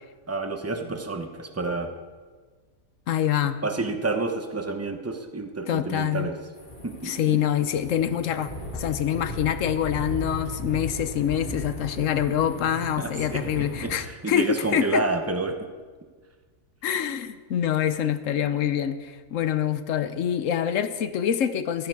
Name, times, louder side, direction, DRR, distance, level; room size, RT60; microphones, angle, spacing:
voice 1, 0.3-1.9 3.6-6.4 6.8-7.4 13.0-15.6, right 3 dB, 15° right, 5 dB, 0.7 m, -29 dB
voice 2, 3.1-3.6 5.7-6.3 7.0-15.0 16.8-21.9, left 9 dB, 65° left, 12 dB, 1.0 m, -25 dB
sound 1, 6.5-14.0, left 1 dB, 35° left, 2.1 m, -37 dB
13.5 x 10.5 x 4.7 m, 1.5 s
omnidirectional pair, 1.5 m